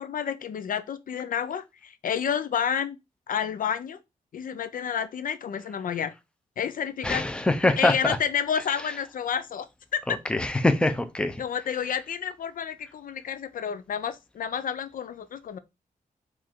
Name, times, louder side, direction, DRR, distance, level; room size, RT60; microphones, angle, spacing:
voice 1, 0.0-3.0 3.3-4.0 4.3-6.1 6.6-7.3 7.8-10.2 11.4-15.6, left 8 dB, 65° left, 0.4 m, -30 dB
voice 2, 7.0-8.2 10.1-11.4, left 2 dB, 5° left, 0.5 m, -24 dB
4.8 x 2.5 x 4.3 m
wide cardioid pair, 155°, 15 cm